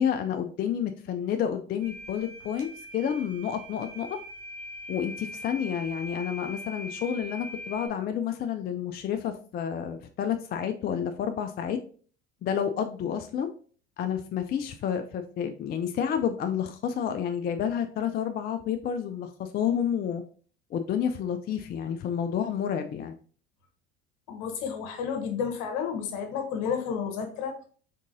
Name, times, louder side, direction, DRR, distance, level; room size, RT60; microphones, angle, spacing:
voice 1, 0.0-4.2 4.9-11.8 12.4-13.5 14.0-20.2 20.7-23.2, left 8 dB, 30° left, 7 dB, 0.4 m, -30 dB
sound 1, 1.8-7.9, left 1 dB, 80° right, 1.2 m, -42 dB
voice 2, 24.3-27.7, left 6 dB, 60° left, 5 dB, 1.1 m, -31 dB
3.7 x 3.6 x 2.6 m, 0.43 s
hypercardioid pair, 70°, 34 cm